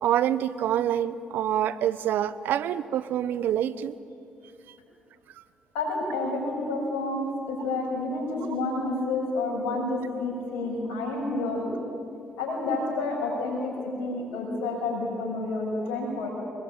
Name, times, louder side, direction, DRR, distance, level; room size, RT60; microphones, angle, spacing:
voice 1, 0.0-3.9, right 10 dB, 75° right, 17 dB, 0.8 m, -26 dB
voice 2, 5.7-11.7 12.4-16.3, left 2 dB, 90° left, -1 dB, 6.7 m, -29 dB
24.0 x 22.0 x 8.8 m, 2.6 s
supercardioid pair, 60°, 3 cm